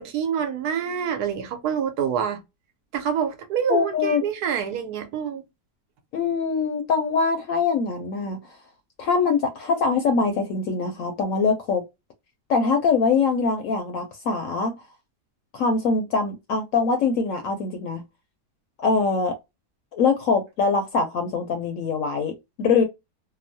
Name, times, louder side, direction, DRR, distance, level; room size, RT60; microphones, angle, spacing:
voice 1, 0.0-2.4 2.9-5.4, right 8 dB, 70° right, 1.1 m, -26 dB
voice 2, 3.7-4.2 6.1-8.4 9.0-11.8 12.5-14.8 15.5-18.0 18.8-19.3 19.9-22.3 22.6-22.8, left 4 dB, 65° left, 0.8 m, -23 dB
2.9 x 2.0 x 2.6 m
omnidirectional pair, 1.8 m